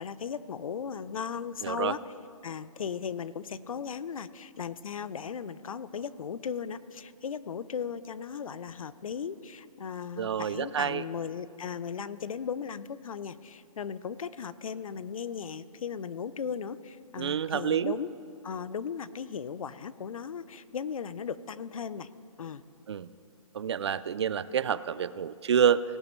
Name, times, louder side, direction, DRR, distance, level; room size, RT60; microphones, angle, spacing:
voice 1, 0.0-2.0 2.4-18.1 18.4-22.1 22.4-22.6, left 7 dB, 70° left, 16 dB, 0.6 m, -37 dB
voice 2, 1.6-1.9 10.2-11.0 17.2-17.9 22.9-23.1 23.5-25.8, right 8 dB, 50° right, 17 dB, 0.4 m, -28 dB
18.0 x 12.0 x 3.1 m, 2.3 s
hypercardioid pair, 160°, 18 cm